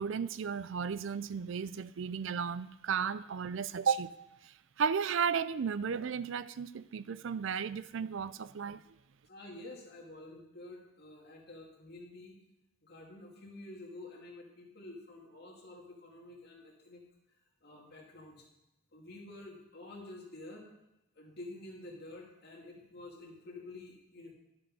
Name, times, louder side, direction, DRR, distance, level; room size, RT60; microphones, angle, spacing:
voice 1, 0.0-4.1 4.4-8.8, right 6 dB, 75° right, 16 dB, 0.4 m, -34 dB
voice 2, 9.2-12.4 12.8-17.0 17.6-18.5 18.9-20.7 21.1-24.3, left 2 dB, 55° left, -2 dB, 2.5 m, -49 dB
11.5 x 7.6 x 5.4 m, 0.91 s
head